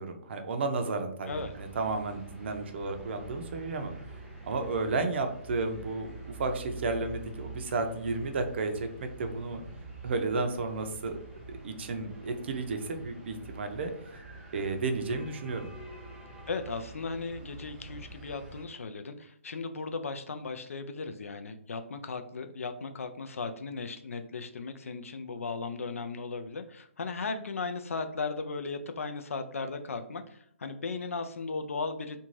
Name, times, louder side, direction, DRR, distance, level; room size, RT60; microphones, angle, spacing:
voice 1, 0.0-4.2 4.4-8.7 9.0-9.6 10.0-11.1 11.5-13.9 14.5-15.7, right 3 dB, 55° right, 6 dB, 0.5 m, -32 dB
sound 1, 1.3-18.7, right 2 dB, 5° right, 0.6 m, -46 dB
voice 2, 16.5-32.2, left 4 dB, 90° left, 8 dB, 0.4 m, -36 dB
2.6 x 2.3 x 3.1 m, 0.69 s
hypercardioid pair, 150°, 7 cm